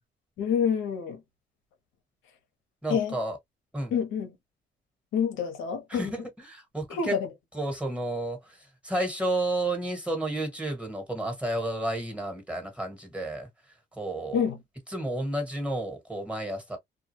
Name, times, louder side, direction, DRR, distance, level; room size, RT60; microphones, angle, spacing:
voice 1, 0.4-1.2 2.9-3.2 3.9-4.3 5.1-6.1 6.9-7.3 14.3-14.6, left 7 dB, 90° left, 0.9 m, -27 dB
voice 2, 2.8-3.4 3.7-3.9 5.9-7.2 7.5-13.5 14.0-14.5 14.9-16.8, right 1 dB, 5° right, 1.4 m, -31 dB
2.4 x 2.3 x 2.9 m
cardioid pair, 90°, 20 cm